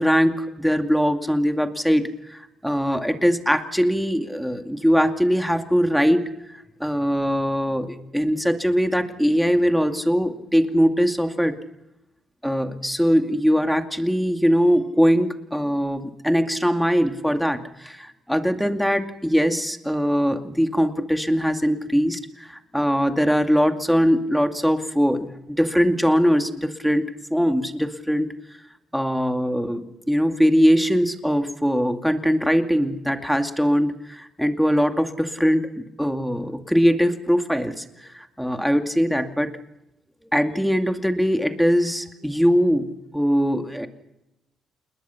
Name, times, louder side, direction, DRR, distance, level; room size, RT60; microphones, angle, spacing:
voice 1, 0.0-6.3 6.8-11.6 12.4-28.3 28.9-39.5 40.3-42.9 43.1-43.9, equal, ahead, 5 dB, 2.4 m, -21 dB
28.5 x 21.0 x 5.8 m, 0.91 s
cardioid pair, 90°, 0 cm